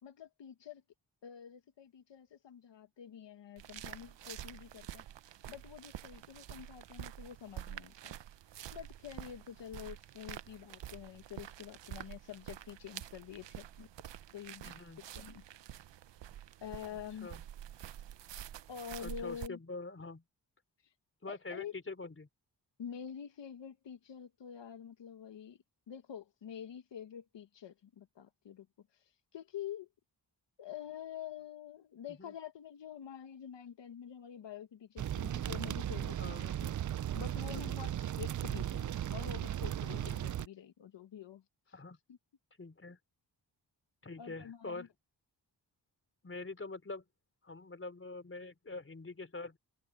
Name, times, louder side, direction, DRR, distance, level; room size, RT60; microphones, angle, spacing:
voice 1, 0.0-0.8 1.2-5.0 5.5-8.2 8.7-13.9 14.3-14.7 15.1-15.4 16.6-17.3 18.7-19.6 21.3-21.7 22.8-25.6 25.9-28.7 29.3-29.9 30.6-36.7 37.1-41.4 44.2-44.9, left 9 dB, 90° left, 1.4 m, -47 dB
sound 1, 3.6-19.5, right 11 dB, 90° right, 0.8 m, -48 dB
voice 2, 14.6-15.0 17.2-17.4 19.0-20.2 21.2-22.3 32.2-32.3 36.2-36.5 37.5-37.7 39.9-40.2 41.7-42.0 42.6-43.0 44.0-44.9 46.2-47.0 47.4-49.6, left 3 dB, 30° left, 4.2 m, -45 dB
sound 2, 35.0-40.5, right 11 dB, 45° right, 0.4 m, -36 dB
wide cardioid pair, 90°, 42 cm